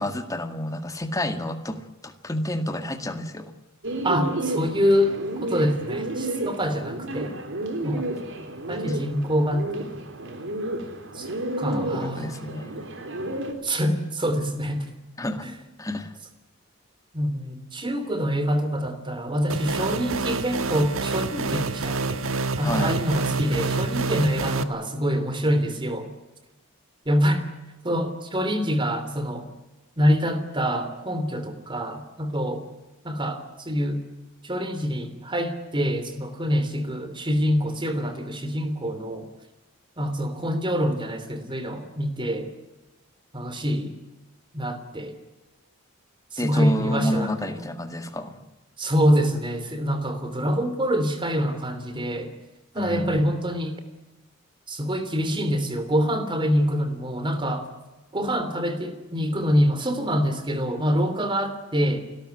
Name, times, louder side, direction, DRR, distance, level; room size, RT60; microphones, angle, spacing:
voice 1, 0.0-3.5 8.0-8.4 8.9-9.0 11.7-12.8 15.2-15.5 15.8-16.2 22.6-23.0 46.4-48.4 52.8-53.4, left 1 dB, 15° left, 7 dB, 1.9 m, -30 dB
Bird, 3.8-13.5, right 1 dB, 65° right, 3.6 m, -31 dB
voice 2, 4.0-7.3 7.8-8.1 8.7-10.0 11.1-11.3 11.6-12.4 13.6-14.9 15.4-15.5 17.1-22.2 22.6-26.1 27.0-27.4 27.8-29.5 30.0-32.6 33.0-34.0 34.4-39.3 40.0-42.5 43.3-44.0 44.5-45.2 46.3-47.6 48.8-52.3 52.7-53.8 54.7-57.7 58.1-62.0, equal, 25° right, 10 dB, 3.1 m, -25 dB
sound 1, 19.5-24.6, right 3 dB, 90° right, 1.5 m, -27 dB
29.5 x 13.0 x 9.6 m, 1.1 s
head